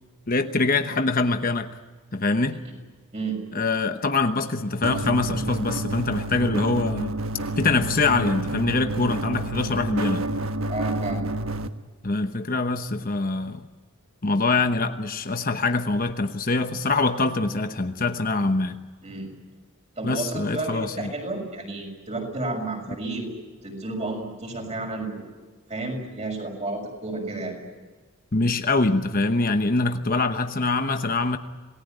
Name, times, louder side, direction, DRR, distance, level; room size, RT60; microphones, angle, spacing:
voice 1, 0.3-1.7 2.1-2.6 3.5-7.2 7.6-10.3 12.0-13.7 14.2-18.8 20.0-21.1 28.3-31.4, left 3 dB, 40° left, 7 dB, 1.0 m, -24 dB
sound 1, 4.8-11.7, right 1 dB, 70° right, 1.3 m, -29 dB
voice 2, 10.7-11.2 19.0-19.3 20.0-23.3 23.6-25.3 25.7-27.6, right 2 dB, 30° right, 2 dB, 6.4 m, -31 dB
27.0 x 19.0 x 9.3 m, 1.3 s
head